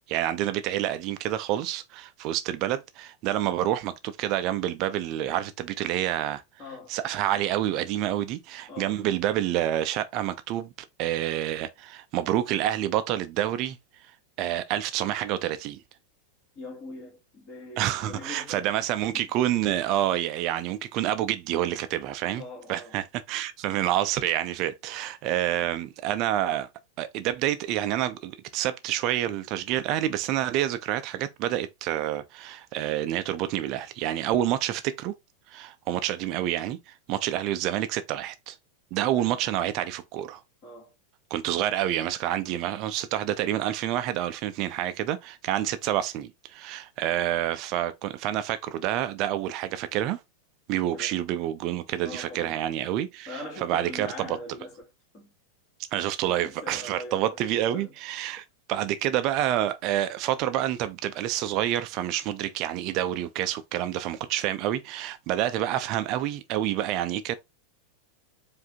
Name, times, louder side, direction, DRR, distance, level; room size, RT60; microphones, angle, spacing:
voice 1, 0.1-6.4 6.9-10.7 11.0-13.8 14.4-15.8 17.8-22.4 22.7-26.7 27.0-35.1 35.5-38.6 38.9-40.4 41.3-50.2 50.7-54.4 55.9-67.3, right 12 dB, 40° right, 0.4 m, -28 dB
voice 2, 6.6-6.9 8.7-9.0 16.6-19.3 22.4-23.0 39.1-39.5 40.6-40.9 50.9-51.2 52.0-52.7 53.3-55.3 56.3-57.4 57.7-57.9, left 2 dB, 40° left, 2.3 m, -42 dB
4.8 x 2.6 x 3.6 m
figure-of-eight pair, 90°, 0 cm